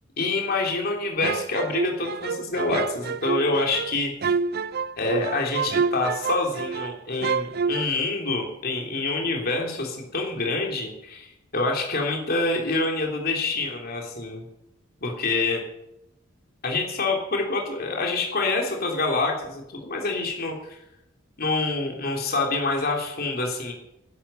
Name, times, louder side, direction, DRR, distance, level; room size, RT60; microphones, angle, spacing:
voice 1, 0.2-4.1 5.0-14.4 15.0-15.6 16.6-20.8 21.4-23.7, left 3 dB, 50° left, 0 dB, 3.4 m, -26 dB
sound 1, 1.2-6.9 7.2-7.8, right 5 dB, 50° right, 0.5 m, -27 dB
11.5 x 11.5 x 9.0 m, 0.84 s
head